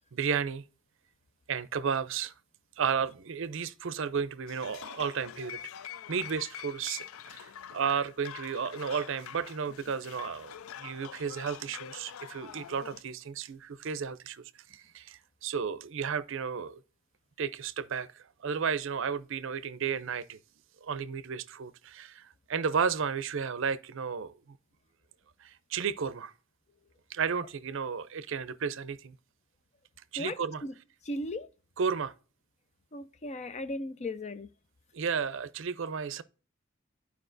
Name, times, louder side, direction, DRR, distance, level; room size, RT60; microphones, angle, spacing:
voice 1, 0.1-0.6 1.5-2.3 2.8-5.6 6.1-14.4 14.7-16.8 17.4-20.4 20.8-24.6 25.4-26.3 27.1-29.2 30.1-30.6 31.8-32.1 34.9-36.2, right 6 dB, 65° right, 0.5 m, -33 dB
sound 1, 4.5-13.0, left 9 dB, 90° left, 0.4 m, -45 dB
voice 2, 30.2-30.7 31.0-31.5 32.9-34.5, left 1 dB, 35° left, 0.5 m, -37 dB
12.0 x 4.7 x 2.6 m
head